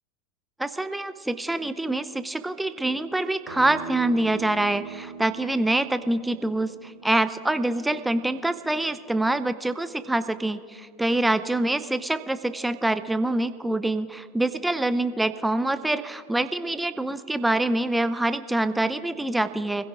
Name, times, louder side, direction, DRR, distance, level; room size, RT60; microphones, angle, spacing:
voice 1, 0.6-19.9, right 2 dB, 5° right, 12 dB, 0.6 m, -25 dB
Acoustic guitar, 3.5-8.7, right 6 dB, 65° right, 3.1 m, -42 dB
25.5 x 16.0 x 2.5 m, 2.2 s
hypercardioid pair, 85°, 0 cm